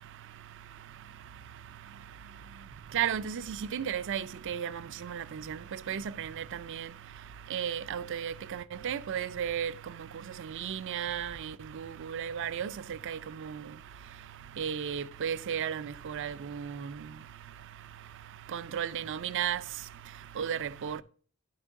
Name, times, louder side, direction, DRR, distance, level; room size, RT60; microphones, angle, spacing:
voice 1, 2.9-3.4 3.7-4.7 5.0-5.6 5.9-6.3 6.7-6.9 7.5-9.7 10.6-11.5 11.8-12.7 13.1-13.2 14.6-16.7 18.5-19.6 20.4-21.0, right 8 dB, 60° right, 0.4 m, -33 dB
11.0 x 4.5 x 3.6 m
head